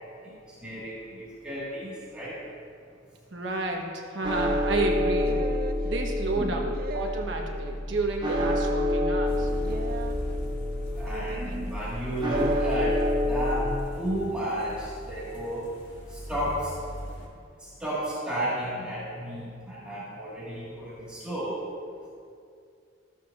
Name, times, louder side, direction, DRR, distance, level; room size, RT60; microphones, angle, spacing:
voice 1, 0.2-2.4 6.3-6.6 11.0-15.7 16.1-16.7 17.6-21.6, right 1 dB, 5° right, -10 dB, 1.8 m, -33 dB
voice 2, 3.3-5.4 5.8-9.5, right 2 dB, 65° right, 1 dB, 1.2 m, -31 dB
sound 1, 4.2-13.8, left 1 dB, 25° right, 0.7 m, -28 dB
sound 2, 5.2-5.8 6.7-7.3 8.2-8.7 9.6-10.2 11.1-11.5 12.3-12.6, right 3 dB, 45° right, 0.4 m, -37 dB
sound 3, 9.2-17.3, equal, 60° left, 1.9 m, -42 dB
14.0 x 9.0 x 2.5 m, 2.3 s
head